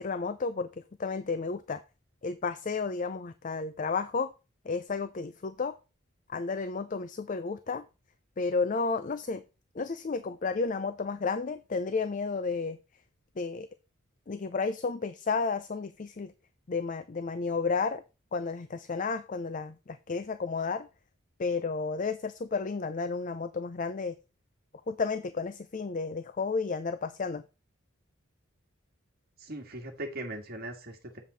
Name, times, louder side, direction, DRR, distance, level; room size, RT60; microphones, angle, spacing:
voice 1, 0.0-1.8 2.2-4.3 4.6-5.8 6.3-7.9 8.4-9.4 9.7-12.8 13.4-13.7 14.3-16.3 16.7-18.0 18.3-20.9 21.4-24.1 24.9-27.4, left 4 dB, 40° left, 12 dB, 0.5 m, -32 dB
voice 2, 29.4-31.2, right 1 dB, 50° right, 4 dB, 1.8 m, -39 dB
7.5 x 7.4 x 4.1 m, 0.29 s
head